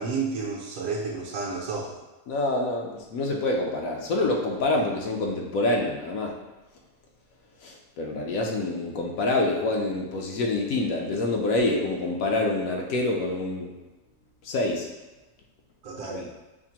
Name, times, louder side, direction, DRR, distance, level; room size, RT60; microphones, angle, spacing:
voice 1, 0.0-2.0 15.8-16.3, right 4 dB, 65° right, -5 dB, 0.9 m, -31 dB
voice 2, 2.3-6.3 7.6-13.7 14.4-14.9 16.0-16.3, left 2 dB, 70° left, 0 dB, 1.0 m, -26 dB
5.7 x 2.0 x 2.8 m, 1.1 s
omnidirectional pair, 1.7 m